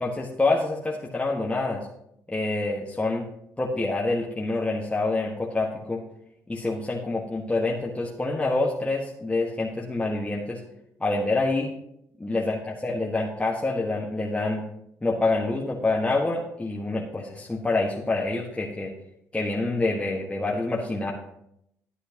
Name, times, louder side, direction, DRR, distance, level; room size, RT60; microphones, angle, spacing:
voice 1, 0.0-1.9 2.3-3.2 3.6-6.0 6.5-10.6 11.0-11.7 12.2-14.6 15.0-18.9 19.3-21.1, left 2 dB, 15° left, -3 dB, 1.4 m, -26 dB
10.5 x 9.8 x 2.9 m, 0.76 s
supercardioid pair, 65°, 8 cm